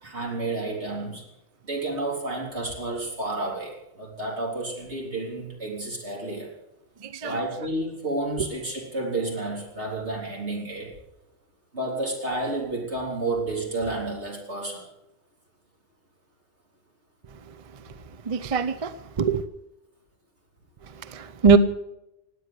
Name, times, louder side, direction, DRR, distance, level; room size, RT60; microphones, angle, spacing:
voice 1, 0.0-1.2 1.6-6.5 7.2-10.9 11.7-14.9, right 2 dB, 70° right, -1 dB, 4.0 m, -31 dB
voice 2, 7.0-7.4 18.3-19.4 21.0-21.6, right 5 dB, 35° right, 13 dB, 0.6 m, -22 dB
18.0 x 9.2 x 8.0 m, 0.89 s
omnidirectional pair, 1.2 m